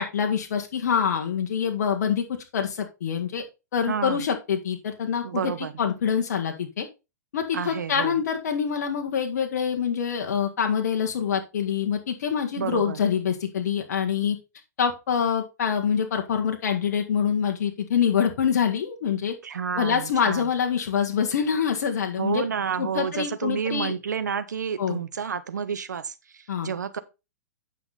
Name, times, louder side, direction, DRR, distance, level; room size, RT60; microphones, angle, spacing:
voice 1, 0.0-2.2 2.5-3.4 3.7-6.9 7.3-14.4 14.8-19.3 19.8-22.4 22.8-23.9 24.8-25.0 26.5-26.7, left 7 dB, 65° left, 1.7 m, -25 dB
voice 2, 3.9-4.2 5.2-5.7 7.5-8.2 12.6-13.0 19.4-20.5 22.2-27.0, right 7 dB, 85° right, 1.1 m, -30 dB
9.4 x 5.9 x 4.0 m
hypercardioid pair, 120°, 9 cm